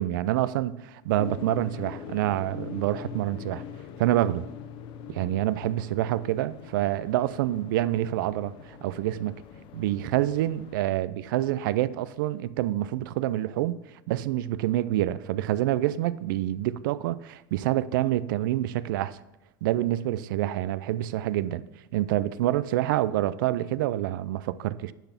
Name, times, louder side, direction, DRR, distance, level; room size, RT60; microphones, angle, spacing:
voice 1, 0.0-3.6 4.0-4.5 5.1-9.3 9.7-13.8 14.1-19.2 19.6-21.6 21.9-24.9, right 14 dB, 75° right, 0.4 m, -27 dB
sound 1, 1.2-10.8, left 8 dB, 50° left, 0.8 m, -43 dB
10.0 x 4.1 x 5.8 m
supercardioid pair, 110°, 11 cm